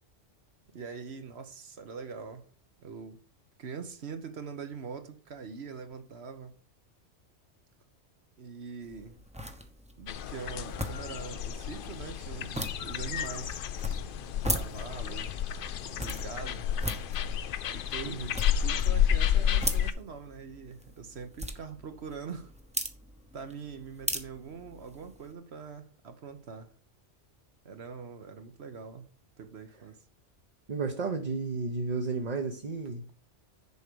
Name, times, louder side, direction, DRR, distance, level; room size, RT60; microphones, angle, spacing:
voice 1, 0.7-2.4 2.8-3.2 3.6-6.5 8.4-9.2 10.0-14.1 14.5-15.3 16.0-16.7 17.7-18.2 18.6-22.5 23.3-26.7 27.6-29.1 29.4-30.0, right 5 dB, 65° right, 1.2 m, -43 dB
sound 1, 8.8-25.3, equal, 5° right, 0.8 m, -40 dB
sound 2, 10.1-19.9, left 9 dB, 60° left, 0.6 m, -31 dB
voice 2, 30.7-33.1, right 4 dB, 40° right, 0.9 m, -32 dB
6.9 x 4.8 x 6.8 m
omnidirectional pair, 1.2 m